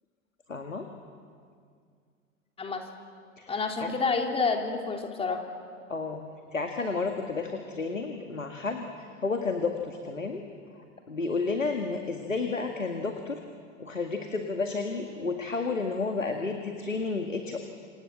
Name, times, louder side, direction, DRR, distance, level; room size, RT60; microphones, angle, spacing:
voice 1, 0.5-0.9 3.4-3.5 3.8-3.9 5.9-6.3 6.5-10.4 11.1-13.4 13.8-17.6, left 4 dB, 80° left, 4 dB, 2.1 m, -31 dB
voice 2, 3.5-5.4, left 4 dB, 15° left, 3 dB, 3.2 m, -29 dB
28.0 x 26.5 x 7.6 m, 2.2 s
figure-of-eight pair, 90°, 38 cm